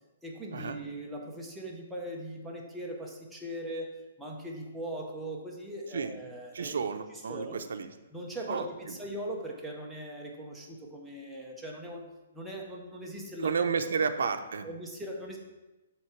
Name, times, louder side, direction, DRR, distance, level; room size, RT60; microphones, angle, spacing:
voice 1, 0.2-6.8 7.3-7.6 8.1-12.1 12.3-13.6 14.6-15.4, right 1 dB, ahead, -3 dB, 0.7 m, -40 dB
voice 2, 6.5-7.9 8.5-9.0 13.4-14.7, right 5 dB, 75° right, 9 dB, 0.6 m, -31 dB
6.0 x 3.6 x 5.9 m, 1.1 s
hypercardioid pair, 170°, 0 cm